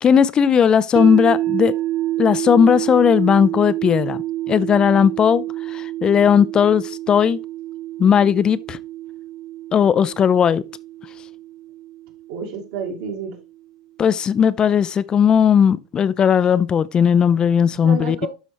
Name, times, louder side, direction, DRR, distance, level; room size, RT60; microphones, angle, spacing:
voice 1, 0.0-1.7 2.2-4.2 4.5-5.4 5.7-7.4 8.0-8.8 9.7-10.6 14.0-18.3, left 7 dB, 25° left, 0.5 m, -16 dB
sound 1, 1.0-13.1, right 15 dB, 40° right, 0.6 m, -28 dB
voice 2, 12.3-13.4 17.6-18.3, right 5 dB, 60° right, 2.4 m, -30 dB
12.0 x 4.1 x 3.0 m
hypercardioid pair, 120°, 3 cm